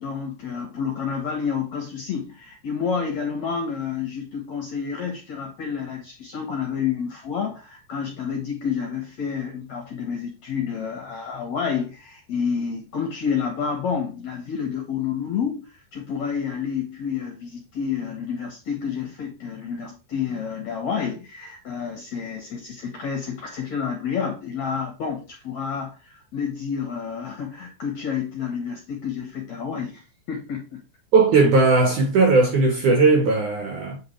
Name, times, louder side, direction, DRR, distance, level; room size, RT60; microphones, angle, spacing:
voice 1, 0.0-30.0 30.3-30.8, left 6 dB, 60° left, 1.9 m, -29 dB
voice 2, 31.1-34.0, right 3 dB, 60° right, 2.3 m, -18 dB
8.5 x 4.7 x 4.5 m
omnidirectional pair, 5.2 m